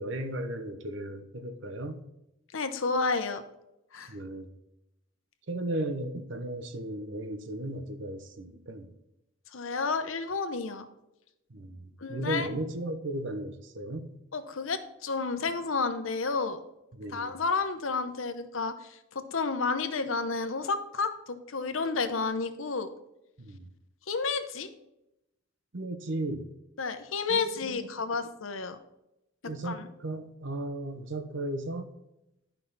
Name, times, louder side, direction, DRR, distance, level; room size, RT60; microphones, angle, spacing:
voice 1, 0.0-2.0 4.1-4.5 5.5-8.9 11.5-14.1 16.9-17.3 23.4-23.7 25.7-26.5 27.3-27.9 29.4-31.9, right 1 dB, 65° right, 8 dB, 0.9 m, -35 dB
voice 2, 2.5-3.4 3.9-4.1 9.5-10.8 12.0-12.5 14.3-16.6 17.1-22.9 24.1-24.7 26.8-28.8 29.6-29.9, left 4 dB, 80° left, 9 dB, 0.9 m, -31 dB
10.5 x 5.6 x 4.1 m, 0.89 s
head